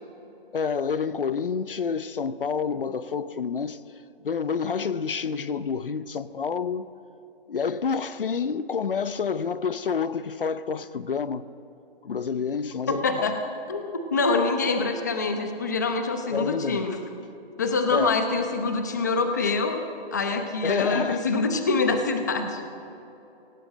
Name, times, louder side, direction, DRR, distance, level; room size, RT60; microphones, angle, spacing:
voice 1, 0.5-3.8 4.2-6.9 7.5-11.5 12.0-13.3 16.3-16.9 17.9-18.2 20.6-21.3, left 6 dB, 60° left, 0.8 m, -28 dB
voice 2, 12.9-13.3 13.7-17.0 17.6-19.8 20.1-22.6, left 3 dB, 15° left, 0.8 m, -25 dB
24.5 x 17.0 x 7.5 m
hypercardioid pair, 180°, 31 cm